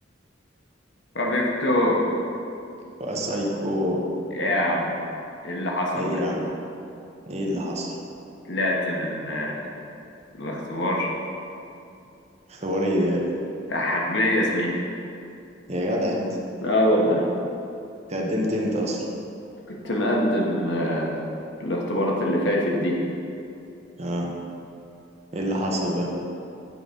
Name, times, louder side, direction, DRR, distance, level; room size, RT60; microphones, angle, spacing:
voice 1, 1.1-2.1 4.3-4.9 5.4-6.2 8.5-9.6 10.4-11.1 13.7-14.7 16.6-17.2 19.7-21.2 21.6-23.0 25.7-25.8, left 1 dB, 65° left, -2 dB, 1.2 m, -24 dB
voice 2, 3.0-4.0 5.9-6.5 7.3-7.9 12.5-13.2 15.7-16.3 18.1-19.0 24.0-24.3 25.3-26.1, equal, 35° right, -1 dB, 1.0 m, -26 dB
9.5 x 3.8 x 5.2 m, 2.6 s
head